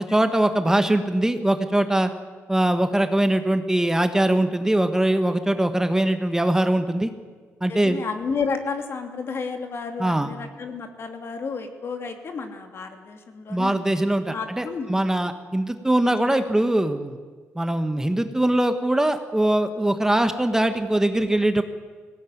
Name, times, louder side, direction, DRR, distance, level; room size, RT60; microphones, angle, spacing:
voice 1, 0.0-2.1 2.5-7.1 7.6-8.0 10.0-10.3 13.5-17.2 17.5-21.6, right 1 dB, 10° right, 8 dB, 1.3 m, -22 dB
voice 2, 7.7-15.1 16.0-16.5, left 5 dB, 50° left, 5 dB, 2.8 m, -32 dB
19.0 x 17.0 x 9.5 m, 1.5 s
cardioid pair, 85°, 5 cm